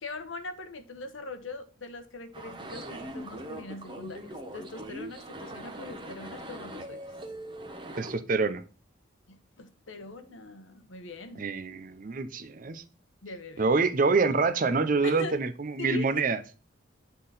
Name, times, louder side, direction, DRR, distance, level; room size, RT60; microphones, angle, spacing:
voice 1, 0.0-7.0 9.3-11.5 13.2-13.7 15.0-15.4 15.8-16.2, left 3 dB, 85° left, 1.0 m, -42 dB
sound 1, 2.3-8.2, right 1 dB, 25° right, 1.0 m, -41 dB
voice 2, 8.0-8.6 11.4-12.8 13.6-16.4, right 4 dB, 45° right, 0.6 m, -26 dB
8.3 x 3.9 x 4.0 m
head